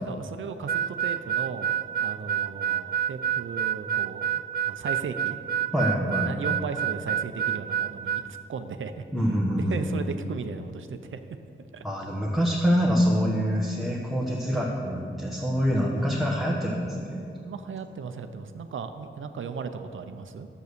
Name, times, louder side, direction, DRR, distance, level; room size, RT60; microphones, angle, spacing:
voice 1, 0.1-1.7 2.0-5.4 6.2-9.0 9.5-11.2 11.7-11.8 15.9-16.1 17.4-20.5, right 5 dB, 75° right, 8 dB, 0.7 m, -36 dB
Harmonica, 0.7-8.3, right 9 dB, 50° right, 0.4 m, -28 dB
voice 2, 5.7-6.3 9.1-9.9 11.8-17.3, equal, ahead, -4 dB, 1.2 m, -25 dB
12.0 x 8.1 x 6.8 m, 2.5 s
wide cardioid pair, 175°, 20 cm